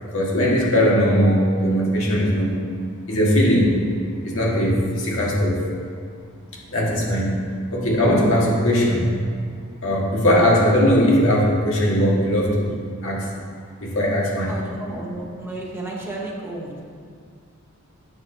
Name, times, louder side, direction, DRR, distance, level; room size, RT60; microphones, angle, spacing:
voice 1, 0.0-2.6 3.1-3.7 4.2-5.6 6.7-7.4 7.7-9.2 9.8-12.7 13.0-13.3 13.8-14.5, equal, 65° left, -4 dB, 1.7 m, -19 dB
voice 2, 14.5-16.8, right 2 dB, 10° right, -4 dB, 1.0 m, -32 dB
7.8 x 5.7 x 4.4 m, 2.2 s
head